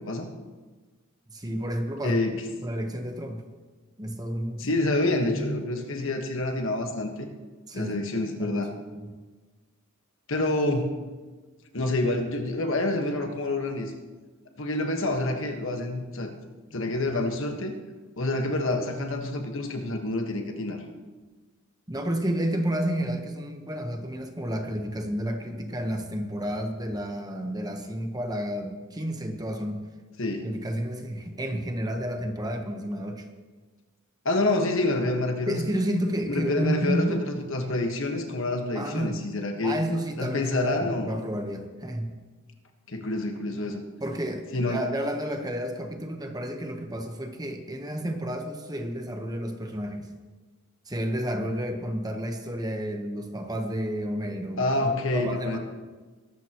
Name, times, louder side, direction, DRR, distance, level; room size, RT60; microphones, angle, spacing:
voice 1, 1.3-2.2 2.6-3.4 4.0-4.7 7.7-8.1 8.4-8.6 8.9-9.1 20.7-20.8 21.9-29.8 30.4-33.3 35.5-37.3 38.7-39.2 39.6-42.2 44.0-50.1 50.9-55.6, equal, 20° right, 4 dB, 1.1 m, -31 dB
voice 2, 2.0-2.4 4.6-7.3 7.7-8.7 10.3-10.9 11.7-13.9 14.6-16.3 16.7-17.7 18.2-20.8 30.2-30.5 34.2-35.6 36.3-39.8 40.2-41.2 42.9-43.8 44.5-44.8 54.6-55.6, left 2 dB, 60° left, 4 dB, 1.5 m, -27 dB
21.5 x 12.5 x 3.1 m, 1.3 s
head